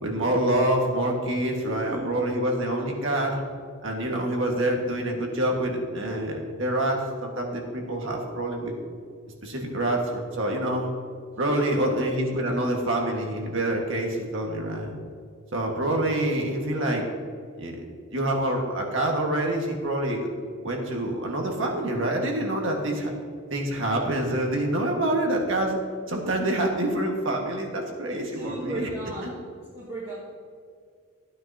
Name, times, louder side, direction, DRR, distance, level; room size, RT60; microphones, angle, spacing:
voice 1, 0.0-3.4 3.8-8.7 9.4-10.1 10.4-10.9 11.4-14.9 15.5-17.1 17.6-17.8 18.1-20.3 20.6-22.9 23.5-25.8 26.1-28.9, right 1 dB, 60° right, 1 dB, 1.7 m, -26 dB
voice 2, 1.6-2.2 11.4-11.8 22.9-23.0 24.9-25.1 28.0-29.5 29.7-30.1, right 2 dB, 30° right, -8 dB, 1.9 m, -35 dB
14.5 x 9.4 x 2.9 m, 2.1 s
head